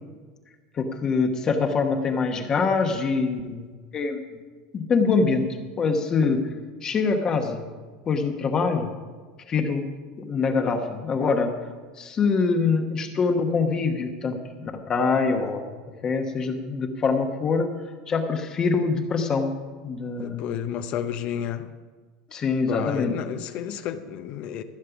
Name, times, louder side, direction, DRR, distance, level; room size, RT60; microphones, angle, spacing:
voice 1, 0.8-3.6 3.9-4.2 4.7-5.5 5.8-6.4 6.8-7.6 8.1-8.9 9.5-9.9 10.2-11.5 12.0-17.7 18.1-19.5 19.8-20.6 22.3-23.2, left 4 dB, 25° left, 4 dB, 1.0 m, -24 dB
voice 2, 20.2-21.7 22.7-24.6, left 9 dB, 45° left, 10 dB, 0.6 m, -31 dB
15.0 x 6.6 x 6.9 m, 1.5 s
supercardioid pair, 150°, 3 cm